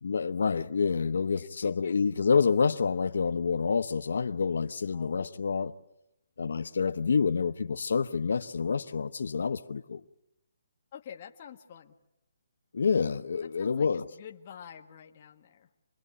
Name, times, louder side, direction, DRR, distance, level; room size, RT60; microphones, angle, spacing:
voice 1, 0.0-5.7 6.4-10.0 12.7-14.0, left 5 dB, 75° left, 1.0 m, -28 dB
voice 2, 1.3-2.0 4.9-5.5 10.9-12.0 13.4-15.7, left 8 dB, 35° left, 1.6 m, -48 dB
27.0 x 21.5 x 10.0 m
hypercardioid pair, 165°, 0 cm